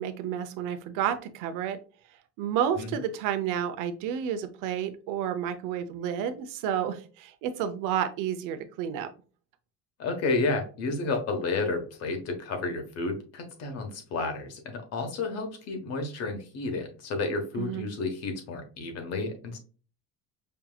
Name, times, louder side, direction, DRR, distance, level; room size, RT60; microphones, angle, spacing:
voice 1, 0.0-1.8 2.4-9.1 17.6-17.9, right 9 dB, 75° right, 10 dB, 0.7 m, -30 dB
voice 2, 10.0-19.6, left 3 dB, 50° left, 5 dB, 1.2 m, -31 dB
5.5 x 2.9 x 2.3 m, 0.37 s
cardioid pair, 160°, 32 cm